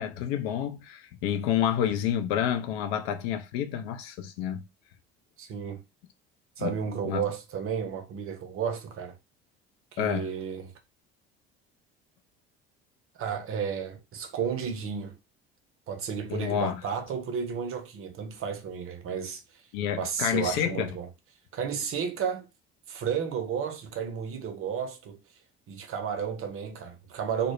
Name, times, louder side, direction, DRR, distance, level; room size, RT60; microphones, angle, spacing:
voice 1, 0.0-4.7 6.6-6.8 7.0-7.2 10.0-10.3 16.3-16.8 19.7-20.9, left 9 dB, 65° left, 0.5 m, -29 dB
voice 2, 5.4-5.8 6.6-9.2 9.9-10.7 13.2-15.2 15.9-19.6 20.0-21.1 21.5-22.5 22.9-25.2 25.7-27.5, right 7 dB, 45° right, 0.6 m, -32 dB
2.1 x 2.0 x 2.9 m
hypercardioid pair, 65°, 31 cm